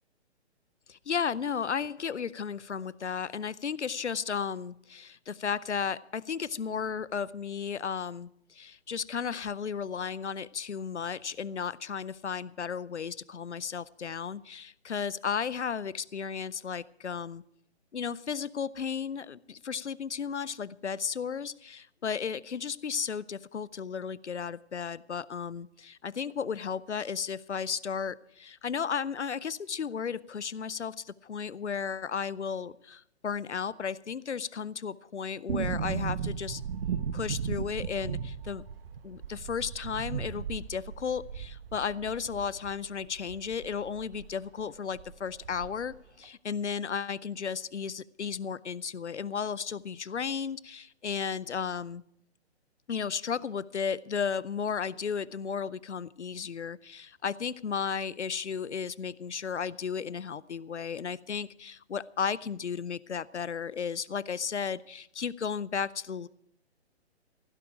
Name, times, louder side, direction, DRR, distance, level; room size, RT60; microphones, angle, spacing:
voice 1, 0.9-17.4 17.9-36.6 37.1-38.6 39.0-52.0 52.9-66.3, left 6 dB, 85° left, 21 dB, 0.6 m, -34 dB
sound 1, 35.5-44.3 44.6-44.7 44.9-46.0 46.2-46.3, right 7 dB, 55° right, 1.1 m, -36 dB
15.5 x 11.5 x 4.9 m, 0.73 s
figure-of-eight pair, 130°, 34 cm